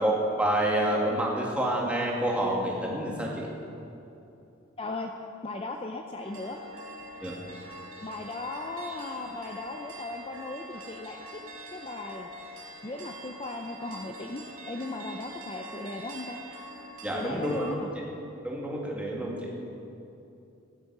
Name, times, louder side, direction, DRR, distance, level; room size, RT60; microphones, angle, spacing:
voice 1, 0.0-3.5 7.2-7.4 17.0-17.8 18.4-19.5, right 1 dB, 5° right, -3 dB, 2.1 m, -28 dB
voice 2, 4.8-5.1 5.4-6.6 8.0-11.4 11.7-12.3 12.8-16.4 17.1-17.9, left 2 dB, 25° left, 3 dB, 0.6 m, -37 dB
sound 1, 6.2-17.7, right 1 dB, 80° right, 2.4 m, -44 dB
16.0 x 11.0 x 5.5 m, 2.8 s
head